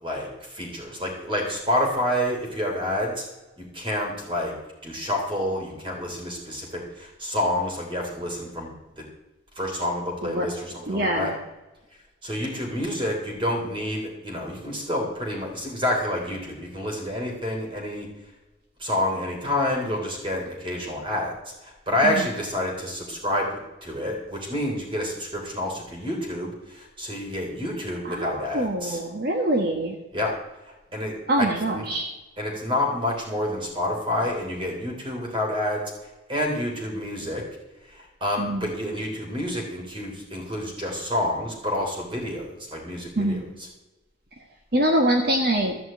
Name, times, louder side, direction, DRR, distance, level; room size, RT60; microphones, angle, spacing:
voice 1, 0.0-3.3 3.6-4.5 4.8-8.7 9.0-9.1 9.6-11.3 12.2-18.1 18.8-21.3 21.6-23.5 23.8-29.0 30.1-30.3 30.9-31.9 32.4-35.8 36.3-37.4 37.9-43.4, left 1 dB, 25° right, 0 dB, 3.6 m, -28 dB
voice 2, 10.9-11.3 22.0-22.3 28.0-30.0 31.3-32.1 38.4-38.7 43.2-43.4 44.7-45.8, right 1 dB, 55° right, 2 dB, 1.4 m, -24 dB
14.0 x 6.2 x 8.5 m, 1.1 s
head